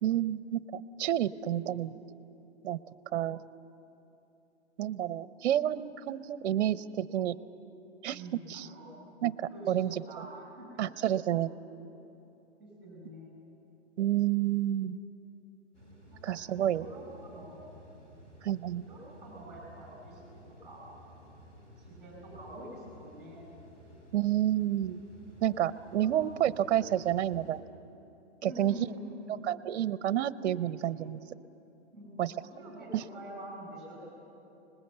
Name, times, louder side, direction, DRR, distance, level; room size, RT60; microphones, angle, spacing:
voice 1, 0.0-1.9 2.6-2.8 3.1-3.4 4.8-7.4 8.0-8.2 8.5-8.7 9.2-10.0 10.8-11.5 14.0-15.0 16.2-16.9 18.4-18.8 24.1-25.0 25.4-27.6 28.4-28.9 29.3-31.2 32.2-32.3 32.9-33.0, right 12 dB, 65° right, 15 dB, 0.7 m, -29 dB
voice 2, 8.1-8.9 9.5-10.8 12.6-13.4 16.1-16.2 16.5-17.6 18.9-20.8 21.8-23.5 26.0-26.2 28.4-29.4 31.9-34.0, right 1 dB, ahead, -1 dB, 7.8 m, -46 dB
sound 1, 15.7-27.6, equal, 30° left, 4.9 m, -54 dB
25.5 x 20.5 x 8.0 m, 3.0 s
hypercardioid pair, 170°, 36 cm